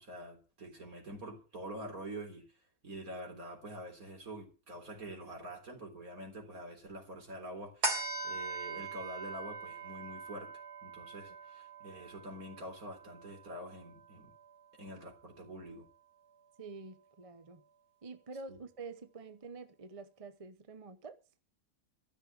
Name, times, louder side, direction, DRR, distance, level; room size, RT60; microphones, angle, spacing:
voice 1, 0.0-2.4 2.8-10.5 10.8-14.3 14.8-15.8 18.5-18.6, right 1 dB, 60° right, 4.2 m, -46 dB
sound 1, 7.8-14.6 15.0-15.1, right 3 dB, 75° right, 4.2 m, -41 dB
voice 2, 16.6-17.6 18.0-21.2, right 4 dB, 30° right, 0.7 m, -47 dB
14.0 x 6.4 x 8.7 m
omnidirectional pair, 1.7 m